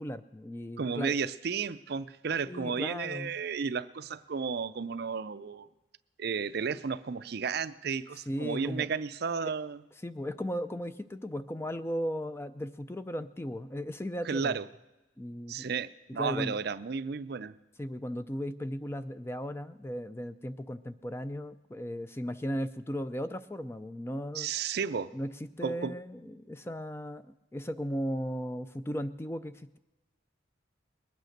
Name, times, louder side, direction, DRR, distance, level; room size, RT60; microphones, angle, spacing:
voice 1, 0.0-1.2 2.5-3.3 8.3-8.9 10.0-14.6 15.2-15.8 16.1-16.6 17.8-24.5 25.1-25.3 25.6-27.3 27.5-29.8, equal, 10° left, 12 dB, 0.4 m, -36 dB
voice 2, 0.8-5.7 6.2-9.8 14.2-14.6 15.5-17.5 24.3-25.1 25.6-25.9, right 5 dB, 55° right, 14 dB, 0.5 m, -33 dB
21.0 x 9.2 x 6.5 m, 1.1 s
head